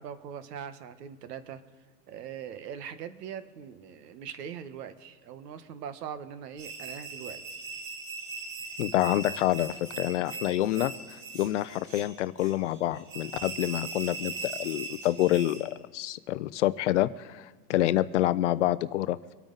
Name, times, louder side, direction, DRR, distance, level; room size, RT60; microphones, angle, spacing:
voice 1, 0.0-1.6 2.1-7.4, right 8 dB, 80° right, 11 dB, 1.3 m, -41 dB
sound 1, 6.6-15.7, right 4 dB, 50° right, 3.2 m, -40 dB
voice 2, 8.8-19.3, left 14 dB, 50° left, 15 dB, 0.5 m, -27 dB
25.0 x 9.0 x 4.0 m, 1.4 s
supercardioid pair, 170°, 48 cm